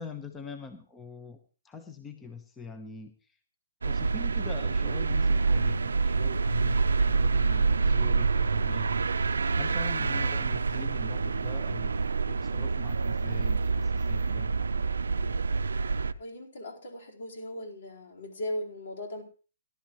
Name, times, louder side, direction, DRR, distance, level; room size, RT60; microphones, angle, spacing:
voice 1, 0.0-1.4 1.6-3.4 3.8-11.9 12.3-14.6, left 4 dB, 10° left, 7 dB, 1.0 m, -44 dB
sound 1, 3.8-16.1, right 4 dB, 85° right, 0.6 m, -27 dB
voice 2, 16.2-19.2, left 1 dB, 65° left, -1 dB, 4.3 m, -38 dB
18.0 x 12.0 x 3.1 m, 0.37 s
hypercardioid pair, 145°, 0 cm